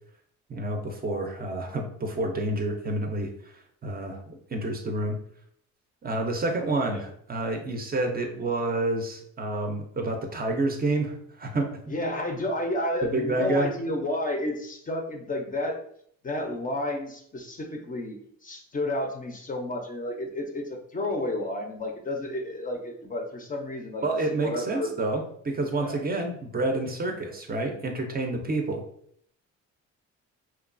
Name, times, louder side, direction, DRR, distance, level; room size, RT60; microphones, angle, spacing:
voice 1, 0.5-3.3 3.8-5.2 6.0-12.0 13.0-13.7 24.0-28.8, right 2 dB, 30° right, 3 dB, 0.5 m, -29 dB
voice 2, 11.9-15.8 16.2-24.9 25.8-26.0, left 1 dB, 30° left, 2 dB, 0.4 m, -31 dB
2.9 x 2.3 x 2.4 m, 0.65 s
cardioid pair, 90°, 30 cm